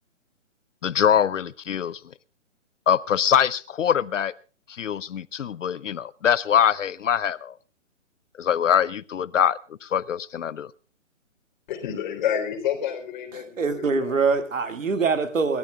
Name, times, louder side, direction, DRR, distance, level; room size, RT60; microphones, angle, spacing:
voice 1, 0.8-2.0 2.9-4.3 4.7-7.5 8.4-10.7, left 8 dB, 70° left, 0.7 m, -23 dB
voice 2, 11.7-14.2, left 9 dB, 35° left, 3.7 m, -29 dB
voice 3, 13.3-15.6, right 4 dB, 75° right, 2.3 m, -24 dB
29.0 x 13.5 x 2.4 m
hypercardioid pair, 150°, 39 cm